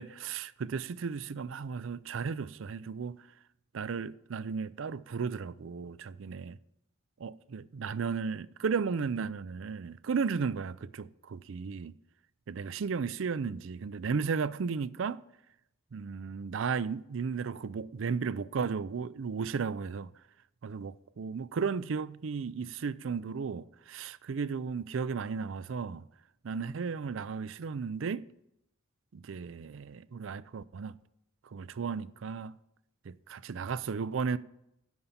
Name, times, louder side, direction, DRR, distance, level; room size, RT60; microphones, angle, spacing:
voice 1, 0.0-3.2 3.7-6.6 7.2-11.9 12.5-15.2 15.9-20.1 20.6-26.1 26.4-28.3 29.1-30.9 31.5-32.5 33.1-34.4, right 5 dB, 70° right, 0.4 m, -34 dB
12.5 x 5.5 x 7.2 m
head